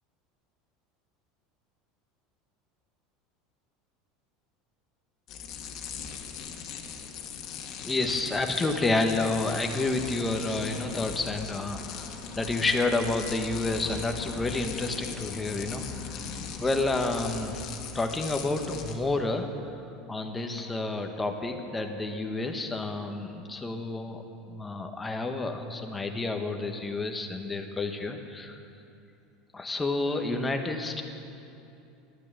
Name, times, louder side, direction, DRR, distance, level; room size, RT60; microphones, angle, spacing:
sound 1, 5.3-19.0, left 6 dB, 50° left, 1.9 m, -39 dB
voice 1, 7.8-16.1 16.6-17.7 17.9-19.8 20.1-24.2 24.5-28.6 29.5-31.0, left 2 dB, 15° left, 4 dB, 1.3 m, -30 dB
12.0 x 11.5 x 8.3 m, 2.7 s
supercardioid pair, 125°, 0 cm